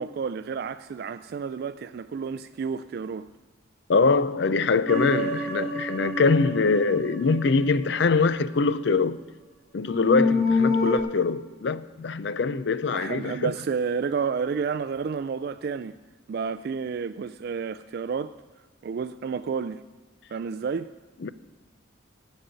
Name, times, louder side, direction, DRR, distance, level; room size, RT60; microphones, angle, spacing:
voice 1, 0.0-3.3 12.9-16.0 16.3-18.4 18.8-19.8 20.3-20.9, right 5 dB, 55° right, 0.3 m, -30 dB
voice 2, 3.9-9.2 9.7-13.5 21.2-21.3, left 4 dB, 60° left, 0.5 m, -23 dB
sound 1, 4.9-8.2 9.8-11.0, left 2 dB, ahead, 2.3 m, -27 dB
16.0 x 5.3 x 9.1 m
head